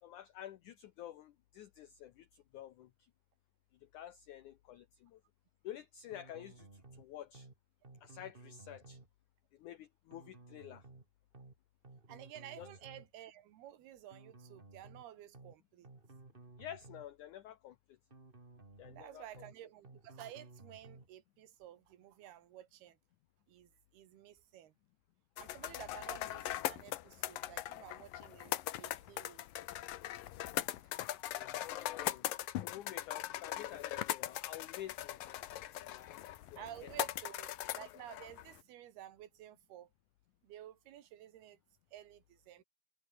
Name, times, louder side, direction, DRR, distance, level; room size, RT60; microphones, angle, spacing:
voice 1, 0.0-2.9 3.8-5.2 5.6-7.5 8.0-9.0 9.5-10.8 12.6-12.7 16.6-18.0 18.8-19.2 31.3-32.3 32.6-35.4 35.7-36.2 36.5-36.9, left 11 dB, 90° left, 1.7 m, -50 dB
sound 1, 6.1-7.0 7.3-7.6 7.8-9.1 10.1-11.0 11.3-11.6 11.8-13.1 14.1-15.0 15.3-15.6 15.8-17.1 18.1-19.0 19.3-19.6 19.8-21.1, right 3 dB, 15° right, 1.9 m, -56 dB
voice 2, 12.1-15.9 18.9-23.0 23.5-24.7 25.4-29.5 36.6-39.9 40.4-41.6 41.9-42.6, right 12 dB, 70° right, 3.3 m, -52 dB
sound 2, 25.4-38.6, left 14 dB, 65° left, 2.5 m, -40 dB
omnidirectional pair, 4.9 m